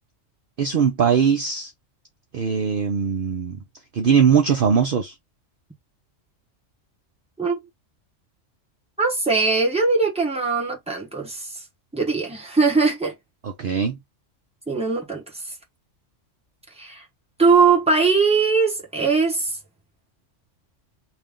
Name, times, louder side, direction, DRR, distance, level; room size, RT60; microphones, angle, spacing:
voice 1, 0.6-1.7 2.3-3.6 3.9-5.1 13.4-14.0, right 7 dB, 55° right, 0.8 m, -20 dB
voice 2, 9.0-11.5 11.9-13.1 14.7-15.4 16.8-17.0 17.4-19.6, right 4 dB, 5° right, 1.2 m, -20 dB
3.3 x 2.7 x 3.6 m
omnidirectional pair, 1.3 m